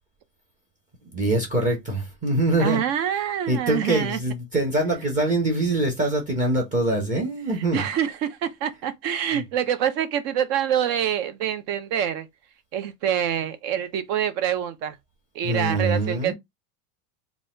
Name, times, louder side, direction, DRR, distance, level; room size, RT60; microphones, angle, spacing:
voice 1, 1.1-2.8 3.5-7.8 9.3-9.4 15.4-16.3, right 2 dB, 15° right, 1.0 m, -24 dB
voice 2, 2.6-4.2 7.7-12.3 12.7-15.0 15.4-16.3, right 9 dB, 35° right, 0.5 m, -26 dB
4.0 x 2.4 x 3.8 m
supercardioid pair, 170°, 44 cm